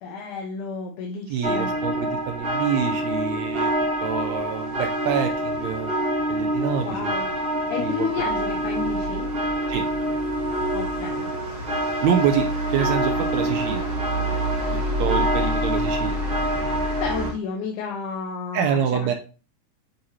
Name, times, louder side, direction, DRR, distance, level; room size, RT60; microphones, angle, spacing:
voice 1, 0.0-1.7 6.8-7.3 7.7-9.2 10.7-11.3 17.0-19.1, left 5 dB, 85° left, 0 dB, 2.4 m, -31 dB
voice 2, 1.3-3.7 4.0-5.9 6.3-7.1 7.8-8.1 9.7-9.9 12.0-13.8 14.7-16.2 18.5-19.1, right 8 dB, 75° right, 5 dB, 1.7 m, -26 dB
sound 1, 1.4-17.3, right 1 dB, 35° right, 1.0 m, -25 dB
9.4 x 4.1 x 2.8 m, 0.36 s
omnidirectional pair, 3.5 m